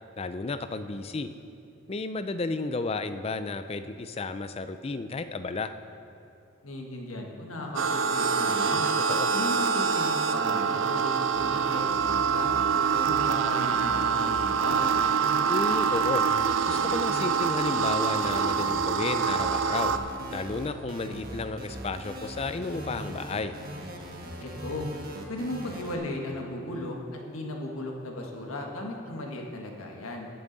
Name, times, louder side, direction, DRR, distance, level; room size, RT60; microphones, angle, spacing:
voice 1, 0.2-1.3 1.9-5.7 9.1-9.3 15.5-16.2 16.7-19.9 20.3-23.5, left 3 dB, 30° left, 10 dB, 0.4 m, -32 dB
voice 2, 6.6-8.9 9.3-12.5 12.9-14.8 24.4-24.9 25.3-30.3, left 1 dB, 90° left, 1 dB, 1.5 m, -36 dB
sound 1, 7.8-20.0, right 6 dB, 65° right, 0.5 m, -25 dB
sound 2, 11.3-26.0, right 1 dB, 45° right, 1.3 m, -40 dB
18.0 x 7.1 x 4.0 m, 2.7 s
head